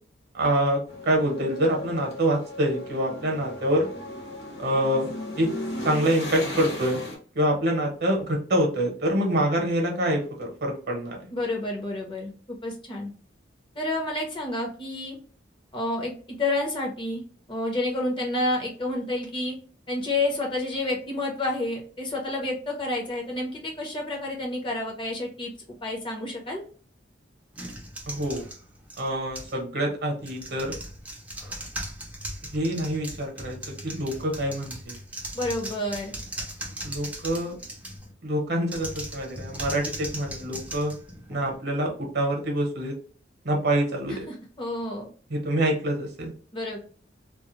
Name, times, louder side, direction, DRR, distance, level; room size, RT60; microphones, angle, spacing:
voice 1, 0.3-3.9 4.6-5.1 5.4-5.5 5.8-7.0 7.3-11.2 28.1-28.4 29.0-30.7 32.5-33.6 33.8-34.9 36.8-37.6 38.2-40.9 41.3-43.0 43.4-44.3 45.3-46.3, right 1 dB, 60° right, 2 dB, 0.8 m, -26 dB
sound 1, 0.9-7.2, left 1 dB, 65° left, 1.1 m, -36 dB
voice 2, 11.3-13.1 13.8-15.2 15.7-17.2 17.5-19.6 19.9-25.5 25.8-26.6 35.3-36.2 44.1-45.1 46.5-46.8, left 2 dB, 25° left, 0 dB, 0.7 m, -29 dB
sound 2, 27.5-29.6 30.2-38.1 38.6-41.6, right 1 dB, 10° right, 0.5 m, -38 dB
2.3 x 2.1 x 2.9 m, 0.41 s
head